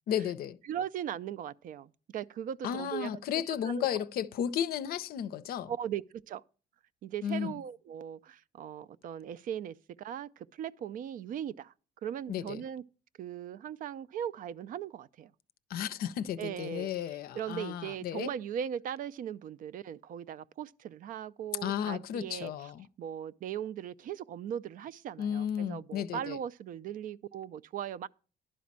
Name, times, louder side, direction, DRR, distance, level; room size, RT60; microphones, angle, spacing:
voice 1, 0.1-0.6 2.6-5.7 7.2-7.5 12.3-12.6 15.7-18.3 21.6-22.9 25.2-26.4, left 9 dB, 65° left, 0.5 m, -34 dB
voice 2, 0.7-3.1 3.5-3.9 5.7-6.4 7.0-11.7 12.0-12.8 13.2-15.3 16.4-22.7 23.0-28.1, right 9 dB, 55° right, 0.4 m, -39 dB
11.5 x 4.2 x 7.3 m
cardioid pair, 110°, 17 cm